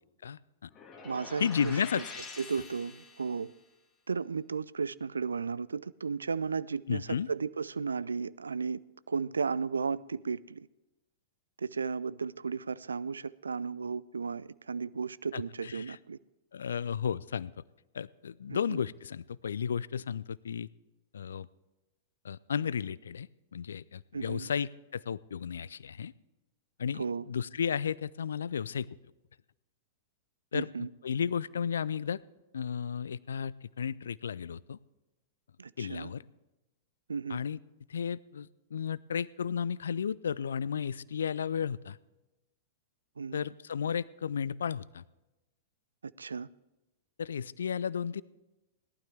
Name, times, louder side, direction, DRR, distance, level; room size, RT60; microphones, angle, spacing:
voice 1, 0.2-0.7 1.4-2.2 6.9-7.3 15.3-16.0 16.5-17.5 17.9-20.7 21.1-21.5 22.2-23.3 23.5-26.1 26.8-28.9 30.5-30.7 31.0-32.2 32.5-34.8 35.8-36.2 37.3-37.6 37.9-42.0 43.3-45.0 47.2-48.2, left 7 dB, 70° left, 22 dB, 0.3 m, -33 dB
sound 1, 0.7-3.5, left 4 dB, 25° left, 2.3 m, -46 dB
voice 2, 1.0-2.0 2.4-3.5 4.1-8.8 9.1-10.7 11.6-16.2 18.5-18.8 24.1-24.5 26.9-27.2 30.5-30.9 35.6-36.1 37.1-37.4 43.2-43.4 46.0-46.5, right 5 dB, 75° right, 19 dB, 0.3 m, -34 dB
18.0 x 12.0 x 3.4 m, 1.0 s
figure-of-eight pair, 100°, 0 cm